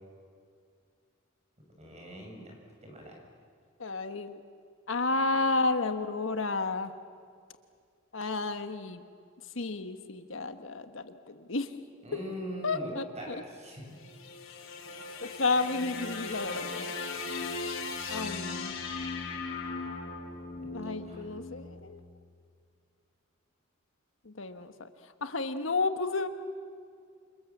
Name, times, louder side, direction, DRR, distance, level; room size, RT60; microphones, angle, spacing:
voice 1, 1.8-2.5 2.8-3.2 12.0-13.9 20.6-21.3, equal, 35° right, 1 dB, 6.9 m, -42 dB
voice 2, 3.8-4.4 4.9-6.9 8.1-9.0 9.5-11.7 12.6-13.4 15.2-16.9 18.1-18.7 20.7-22.0 24.2-24.9 25.2-26.3, left 3 dB, 70° left, 9 dB, 1.4 m, -31 dB
sound 1, 13.8-22.1, left 4 dB, 90° left, 3.5 m, -38 dB
29.0 x 27.0 x 7.3 m, 2.2 s
head